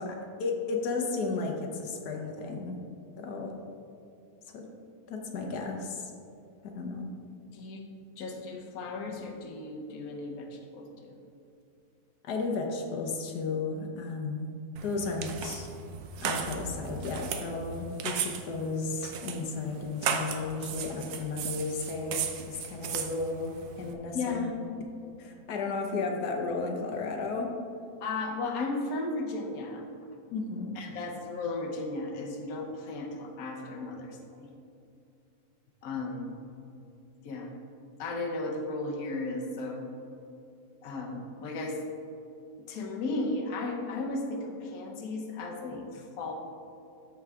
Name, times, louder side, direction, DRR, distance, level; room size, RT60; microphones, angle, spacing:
voice 1, 0.0-2.8 3.2-3.5 4.5-4.6 5.1-6.1 6.6-7.1 12.2-14.5 14.8-15.7 16.2-24.4 25.2-27.5 30.3-30.7, left 3 dB, 90° left, 2 dB, 1.4 m, -34 dB
voice 2, 7.5-7.8 8.2-11.2 24.1-24.6 28.0-29.9 30.8-34.5 35.8-36.3 37.2-37.5 38.0-39.9 40.8-41.8 42.7-46.3, left 2 dB, 70° left, 2 dB, 1.3 m, -35 dB
sound 1, 14.8-23.9, right 7 dB, 80° right, 1.2 m, -36 dB
13.5 x 4.7 x 3.6 m, 2.5 s
omnidirectional pair, 1.6 m